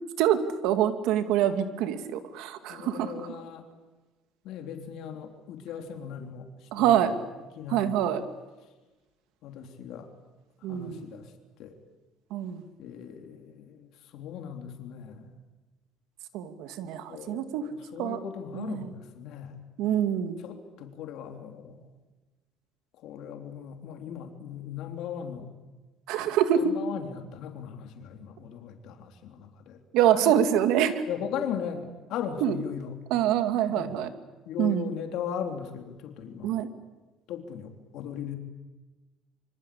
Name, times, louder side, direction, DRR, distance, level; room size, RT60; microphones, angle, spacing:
voice 1, 0.2-3.1 6.7-7.1 7.7-8.2 10.6-11.1 12.3-12.6 16.3-17.6 18.0-18.2 18.5-18.9 19.8-20.4 26.1-26.7 29.9-31.0 32.4-32.5 33.1-34.1 34.6-34.9 36.4-36.7, right 10 dB, 85° right, 9 dB, 2.5 m, -25 dB
voice 2, 2.7-3.6 4.4-7.1 7.5-8.0 9.4-10.1 10.6-11.3 11.6-11.8 12.8-15.4 17.1-19.6 20.4-21.9 23.0-25.5 26.2-29.8 30.1-30.3 31.1-33.0 33.7-34.0 34.4-36.5 37.3-38.4, left 8 dB, 75° left, 5 dB, 3.4 m, -38 dB
25.5 x 25.0 x 8.6 m, 1.2 s
cardioid pair, 130°, 0 cm